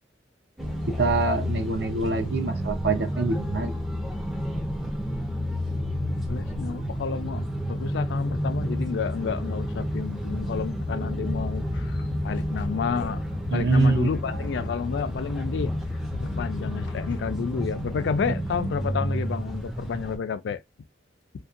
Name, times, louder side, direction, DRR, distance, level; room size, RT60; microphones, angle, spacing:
sound 1, 0.6-20.2, equal, ahead, 0.4 m, -30 dB
voice 1, 0.9-3.8 13.5-14.4, right 3 dB, 60° right, 0.5 m, -25 dB
voice 2, 6.3-13.2 13.5-15.7 16.1-20.6, left 6 dB, 75° left, 0.3 m, -30 dB
sound 2, 9.4-16.1, left 2 dB, 90° right, 1.3 m, -38 dB
2.5 x 2.2 x 2.4 m
head